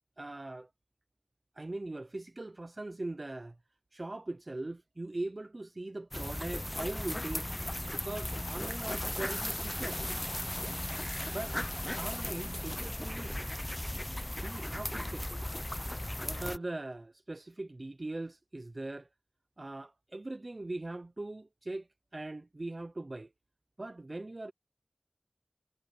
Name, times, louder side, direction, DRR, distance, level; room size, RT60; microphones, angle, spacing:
voice 1, 0.2-0.7 1.6-3.6 3.9-7.5 7.9-10.0 11.3-11.6 12.0-13.5 14.3-15.2 16.2-19.1 19.6-21.9 22.1-23.3 23.8-24.5, right 2 dB, 80° right, 0.7 m, -40 dB
sound 1, 6.1-16.6, left 1 dB, 30° left, 0.8 m, -36 dB
wide cardioid pair, 40°, 0 cm